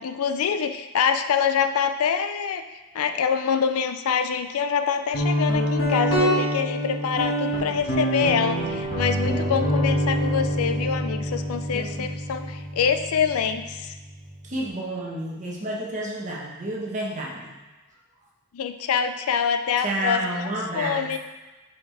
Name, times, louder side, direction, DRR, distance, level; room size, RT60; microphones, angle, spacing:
voice 1, 0.0-2.6 2.9-13.9 18.5-20.5 20.7-21.2, left 7 dB, 85° left, 8 dB, 0.4 m, -25 dB
Guitar, 5.1-14.6, equal, 60° left, 1.7 m, -26 dB
voice 2, 11.7-12.2 14.4-17.5 19.8-21.1, right 1 dB, 35° right, -3 dB, 1.2 m, -30 dB
6.9 x 4.8 x 3.3 m, 1.2 s
head